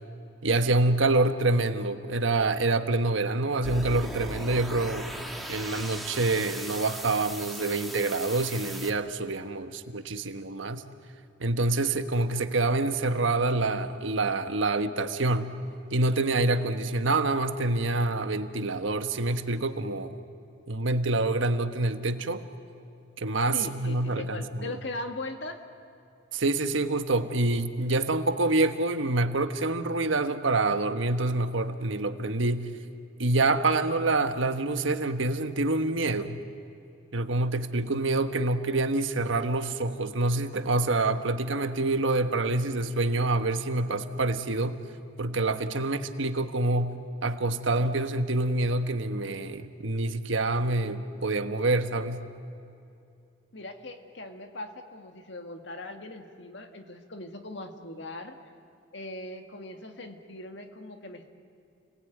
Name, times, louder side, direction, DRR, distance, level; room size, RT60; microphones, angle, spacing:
voice 1, 0.4-5.1 5.5-10.8 11.4-15.5 15.9-20.2 20.7-22.4 23.2-24.7 26.3-32.7 33.2-36.4 37.1-44.8 45.2-46.9 47.2-52.2, right 2 dB, 75° right, 9 dB, 1.3 m, -26 dB
sound 1, 3.6-8.9, right 1 dB, ahead, 1.8 m, -38 dB
voice 2, 23.5-25.7 53.5-58.4 58.9-61.3, left 2 dB, 60° left, 6 dB, 2.0 m, -40 dB
29.5 x 20.5 x 9.3 m, 2.7 s
head